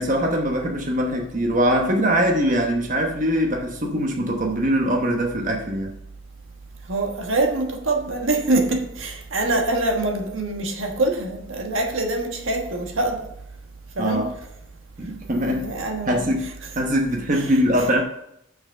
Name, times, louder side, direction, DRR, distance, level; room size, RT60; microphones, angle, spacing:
voice 1, 0.0-5.9 14.0-14.3 15.0-15.7 16.1-16.5 16.8-18.0, equal, 40° right, 1.0 m, -22 dB
voice 2, 6.9-13.3 14.0-14.3 15.6-16.1 17.3-17.5, right 2 dB, 80° right, 1.3 m, -24 dB
6.5 x 5.7 x 6.4 m
head